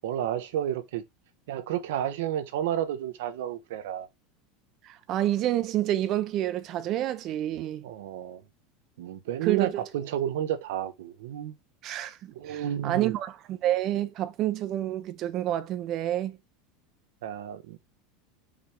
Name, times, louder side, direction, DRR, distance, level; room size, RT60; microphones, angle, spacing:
voice 1, 0.0-1.0 1.5-4.1 7.8-8.4 9.0-11.5 12.3-13.1 17.2-17.8, right 11 dB, 85° right, 1.0 m, -31 dB
voice 2, 4.8-7.8 9.4-9.8 11.8-16.4, right 13 dB, 40° right, 0.7 m, -29 dB
5.3 x 5.2 x 4.5 m
supercardioid pair, 150°, 0 cm